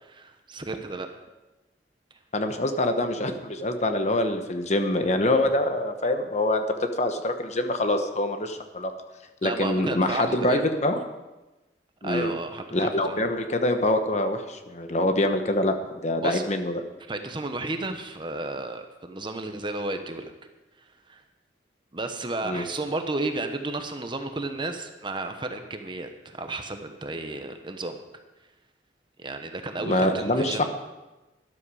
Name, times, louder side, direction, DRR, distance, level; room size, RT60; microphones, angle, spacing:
voice 1, 0.0-1.1 9.4-10.6 12.0-13.2 16.2-16.4 17.1-20.3 21.1-21.2 21.9-28.0 29.2-30.7, right 2 dB, 30° right, 6 dB, 1.0 m, -33 dB
voice 2, 2.3-8.9 9.4-11.0 12.0-12.3 12.7-16.8 22.4-22.6 29.9-30.7, left 1 dB, 40° left, 7 dB, 1.1 m, -25 dB
13.0 x 12.0 x 4.9 m, 1.1 s
head